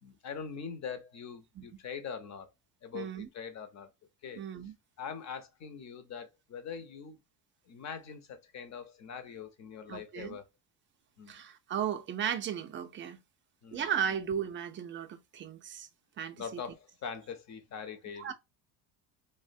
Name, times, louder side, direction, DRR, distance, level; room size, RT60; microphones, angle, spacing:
voice 1, 0.0-2.5 2.8-3.9 4.2-4.4 5.0-7.2 7.7-10.4 11.2-11.3 13.6-13.8 16.4-18.3, left 6 dB, 35° left, 0.6 m, -42 dB
voice 2, 2.9-3.3 4.4-4.7 9.9-10.4 11.3-13.2 13.7-15.9 16.2-16.6 18.2-18.3, right 8 dB, 25° right, 0.3 m, -35 dB
2.5 x 2.1 x 2.5 m
supercardioid pair, 95°, 50 cm